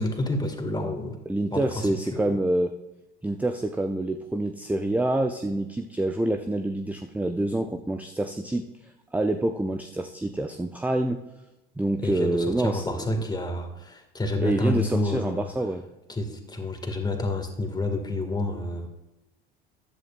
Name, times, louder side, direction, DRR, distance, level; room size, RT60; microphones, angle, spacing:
voice 1, 0.0-1.2 1.5-2.4 12.0-15.5 16.1-18.9, left 2 dB, 15° left, 5 dB, 1.9 m, -29 dB
voice 2, 1.3-2.7 3.2-11.2 11.8-12.8 14.4-15.9, right 1 dB, 5° right, 7 dB, 0.5 m, -27 dB
15.0 x 10.5 x 2.4 m, 0.98 s
hypercardioid pair, 70°, 30 cm